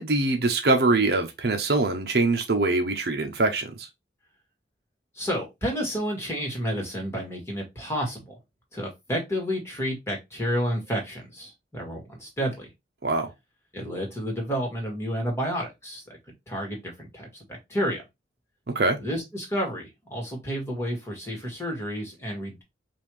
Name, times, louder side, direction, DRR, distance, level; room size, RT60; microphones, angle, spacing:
voice 1, 0.0-3.9 13.0-13.3 18.7-19.0, right 2 dB, 60° right, 0.7 m, -23 dB
voice 2, 5.1-8.4 8.7-12.7 13.7-16.0 16.5-18.0 19.0-22.6, equal, 15° left, 1.7 m, -30 dB
5.4 x 2.5 x 3.1 m
head